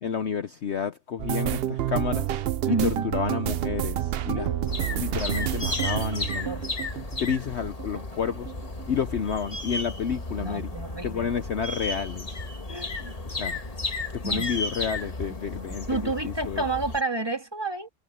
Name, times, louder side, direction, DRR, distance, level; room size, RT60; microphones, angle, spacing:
voice 1, 0.0-2.3 2.7-4.5 4.9-6.5 7.2-8.5 8.9-10.7 11.0-12.3 13.3-13.6 14.1-16.6, left 7 dB, 55° left, 0.9 m, -30 dB
sound 1, 1.2-8.0 8.3-9.3 9.6-10.0 10.3-10.5, right 12 dB, 65° right, 0.6 m, -29 dB
voice 2, 2.6-3.1 4.3-4.8 6.4-6.6 10.4-11.3 12.7-13.2 14.2-14.5 15.9-17.9, right 3 dB, 15° right, 1.9 m, -30 dB
sound 2, 4.7-17.0, left 2 dB, 25° left, 1.5 m, -34 dB
omnidirectional pair, 1.6 m